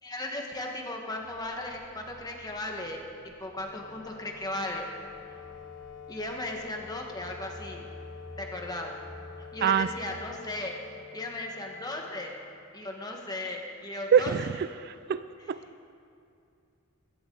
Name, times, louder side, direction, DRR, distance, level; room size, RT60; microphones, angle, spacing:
voice 1, 0.0-4.9 6.1-7.9 8.4-9.0 9.5-10.8 11.1-12.4 12.7-14.4, left 2 dB, 20° left, 1 dB, 1.4 m, -36 dB
sound 1, 1.1-10.3, left 1 dB, 15° right, 1.8 m, -52 dB
Wind instrument woodwind instrument, 3.5-12.8, left 6 dB, 55° left, 0.9 m, -47 dB
voice 2, 14.1-15.6, right 7 dB, 45° right, 14 dB, 0.3 m, -25 dB
21.0 x 16.0 x 3.9 m, 2.5 s
head